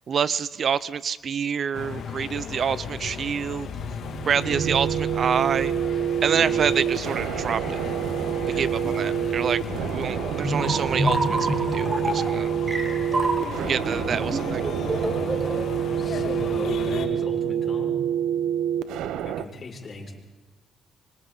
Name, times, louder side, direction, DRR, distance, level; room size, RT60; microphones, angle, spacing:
voice 1, 0.1-3.7 4.3-5.7 6.2-7.8 8.6-8.7 8.9-9.6 9.9-12.5 13.7-14.6, right 7 dB, 50° right, 17 dB, 0.6 m, -27 dB
sound 1, 1.7-17.1, left 6 dB, 70° left, 2.6 m, -36 dB
sound 2, 3.8-19.4, right 9 dB, 90° right, 0.8 m, -27 dB
voice 2, 4.4-4.7 6.3-6.6 8.5-9.4 13.6-14.1 15.3-15.4 15.9-18.0 19.2-20.1, left 3 dB, 40° left, 0 dB, 6.1 m, -38 dB
sound 3, 10.4-15.6, right 1 dB, 30° right, 3.9 m, -27 dB
26.0 x 25.5 x 4.0 m, 1.2 s
cardioid pair, 90°, 0 cm